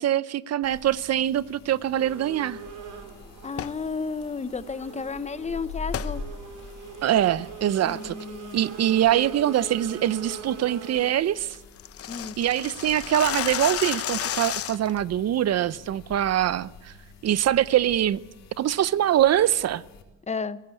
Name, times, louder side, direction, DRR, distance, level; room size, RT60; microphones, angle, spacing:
voice 1, 0.0-2.6 7.0-8.2 8.5-11.6 12.4-16.9 17.2-18.2 18.6-19.8, right 11 dB, 50° right, 0.7 m, -23 dB
sound 1, 0.6-20.0, left 4 dB, 85° left, 4.0 m, -45 dB
sound 2, 2.0-11.1, right 5 dB, 65° right, 4.1 m, -42 dB
voice 2, 3.4-6.2 7.8-8.6 12.1-12.4 20.3-20.6, left 5 dB, 20° left, 0.9 m, -32 dB
sound 3, 3.5-3.8 5.9-6.1 6.6-6.7 7.2-7.5 7.9-8.2 8.6-8.8 9.2-9.3 9.7-9.9 10.3-10.4 10.7-10.8 11.0-11.1 11.3-15.0, left 10 dB, 45° left, 0.8 m, -32 dB
22.0 x 17.5 x 8.4 m
cardioid pair, 115°, 33 cm